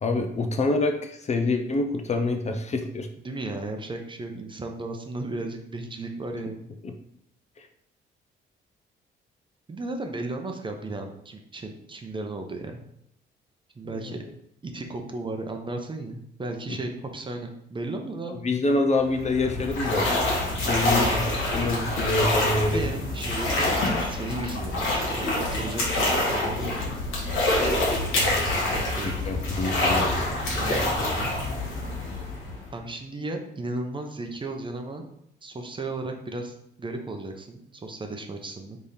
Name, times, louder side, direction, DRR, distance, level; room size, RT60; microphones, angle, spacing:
voice 1, 0.0-3.1 6.8-6.9 7.6-7.7 13.8-14.1 16.7-16.8 18.3-20.1 20.4-22.8 28.1-30.3, left 2 dB, 35° left, 5 dB, 0.5 m, -27 dB
voice 2, 3.2-6.7 9.7-12.8 13.8-14.2 14.6-18.4 20.6-21.2 22.7-27.0 28.5-29.1 30.5-31.4 32.7-35.1 35.4-38.8, right 2 dB, 25° right, 4 dB, 0.7 m, -35 dB
sound 1, 19.0-32.8, left 2 dB, 85° left, 1.5 m, -26 dB
3.5 x 3.4 x 4.1 m, 0.74 s
cardioid pair, 90°, 20 cm